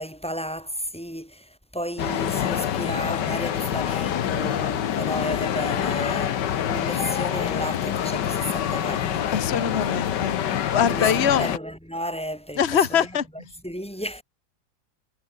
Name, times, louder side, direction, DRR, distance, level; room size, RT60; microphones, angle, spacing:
voice 1, 0.0-9.5 9.9-10.5 10.9-13.1 13.6-14.2, equal, 5° left, 5.3 m, -33 dB
sound 1, 2.0-11.6, left 10 dB, 65° left, 1.7 m, -26 dB
voice 2, 9.3-11.5 12.6-13.2, left 8 dB, 35° left, 1.6 m, -23 dB
omnidirectional pair, 2.1 m